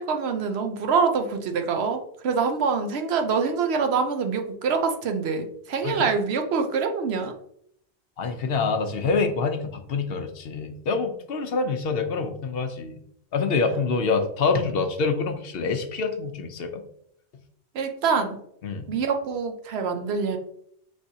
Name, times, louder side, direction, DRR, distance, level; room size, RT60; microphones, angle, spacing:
voice 1, 0.0-7.3 17.7-18.4 18.9-20.4, right 5 dB, 70° right, 6 dB, 0.9 m, -25 dB
voice 2, 8.2-13.0 13.3-16.8 18.6-18.9, left 4 dB, 65° left, 7 dB, 0.8 m, -26 dB
5.3 x 3.2 x 2.7 m, 0.69 s
omnidirectional pair, 1.1 m